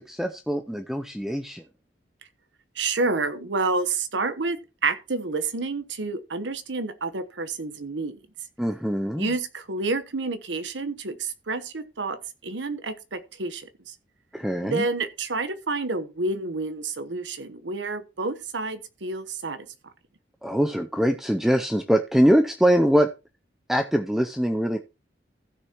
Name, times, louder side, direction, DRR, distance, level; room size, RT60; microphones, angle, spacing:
voice 1, 0.0-1.6 8.6-9.3 14.3-14.9 20.4-23.1 23.7-24.8, equal, ahead, 0.5 m, -23 dB
voice 2, 2.7-8.2 9.2-14.0 14.6-19.7, right 3 dB, 85° right, 1.1 m, -29 dB
15.5 x 6.6 x 3.0 m
head